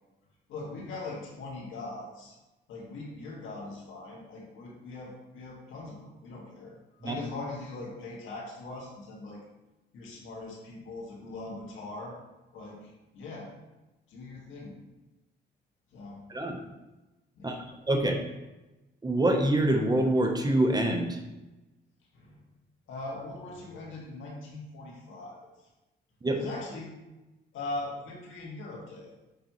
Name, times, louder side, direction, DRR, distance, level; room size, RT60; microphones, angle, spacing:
voice 1, 0.5-2.3 2.7-9.4 9.9-12.2 12.5-13.5 14.1-14.8 15.9-16.2 17.3-17.6 22.1-22.3 22.9-25.4 26.3-26.9 27.5-29.2, left 2 dB, 80° left, -3 dB, 1.9 m, -41 dB
voice 2, 17.4-18.2 19.0-21.2 26.2-26.4, right 1 dB, 20° right, 3 dB, 0.9 m, -26 dB
6.7 x 5.2 x 3.1 m, 1.0 s
cardioid pair, 90°, 20 cm